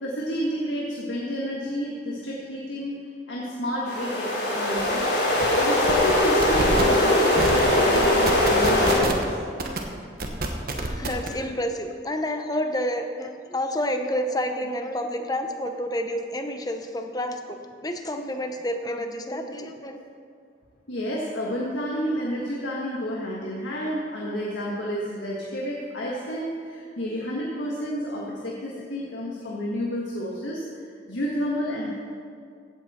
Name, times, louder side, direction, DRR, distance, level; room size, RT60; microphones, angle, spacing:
voice 1, 0.0-3.0 3.3-5.1 5.5-9.4 20.9-30.6 31.1-31.9, equal, 85° left, -4 dB, 1.6 m, -30 dB
sound 1, 3.9-9.0, left 1 dB, 60° left, 3.1 m, -21 dB
sound 2, 4.8-4.9 5.2-5.5 5.8-6.1 6.4-6.8 7.4-7.6 7.9-9.2 9.6-9.8 10.2-11.3, right 2 dB, 50° right, 1.1 m, -27 dB
voice 2, 10.8-20.0, equal, 20° left, 6 dB, 0.8 m, -29 dB
15.5 x 8.0 x 4.3 m, 2.3 s
head